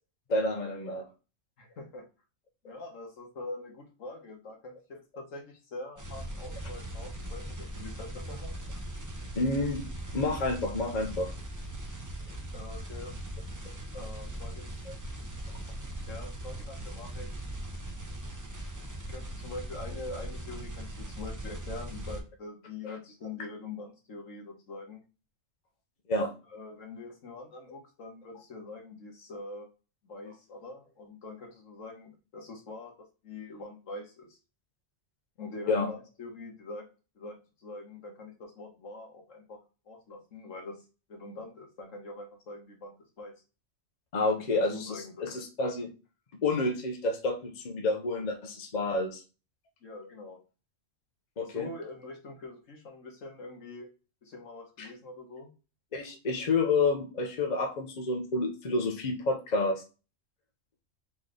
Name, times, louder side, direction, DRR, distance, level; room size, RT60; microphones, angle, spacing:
voice 1, 0.3-1.0 9.3-9.8 10.1-11.3 14.9-15.0 26.1-26.3 35.7-35.9 44.1-45.9 46.4-49.2 51.4-51.7 54.8-54.9 55.9-59.8, left 3 dB, 40° left, 3 dB, 0.8 m, -29 dB
voice 2, 1.6-2.0 2.6-8.5 12.5-13.1 13.9-14.8 16.1-17.3 19.1-25.0 26.5-29.7 30.0-32.9 33.2-34.4 35.4-36.9 37.1-39.6 39.8-40.8 41.1-43.3 44.2-45.1 49.8-50.4 51.4-53.9 54.2-55.5, left 3 dB, 75° left, 1 dB, 1.6 m, -44 dB
sound 1, 6.0-22.2, right 1 dB, 20° right, 0.6 m, -40 dB
4.1 x 3.2 x 3.8 m, 0.32 s
omnidirectional pair, 1.3 m